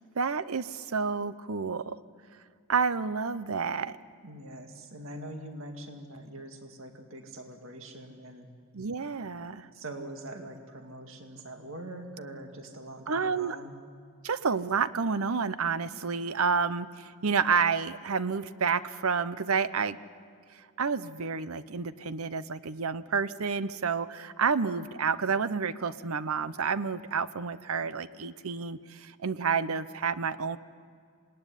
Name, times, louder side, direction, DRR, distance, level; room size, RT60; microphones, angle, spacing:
voice 1, 0.1-2.0 2.7-4.0 8.7-9.7 13.1-13.6 14.2-20.0 20.8-30.6, right 5 dB, 80° right, 15 dB, 0.8 m, -29 dB
voice 2, 4.2-8.5 9.7-13.8, right 1 dB, 65° right, 4 dB, 2.1 m, -43 dB
26.0 x 19.0 x 10.0 m, 2.2 s
head